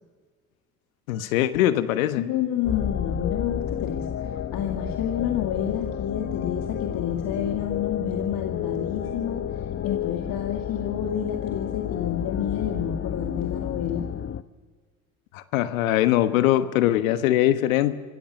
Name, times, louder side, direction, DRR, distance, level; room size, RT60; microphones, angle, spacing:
voice 1, 1.1-2.3 15.3-17.9, left 13 dB, 75° left, 12 dB, 1.3 m, -22 dB
voice 2, 2.2-9.5 9.8-14.1, left 9 dB, 55° left, 3 dB, 2.2 m, -29 dB
sound 1, 2.6-14.4, left 9 dB, 35° left, 0.9 m, -31 dB
25.0 x 16.0 x 6.5 m, 1.5 s
hypercardioid pair, 60°, 41 cm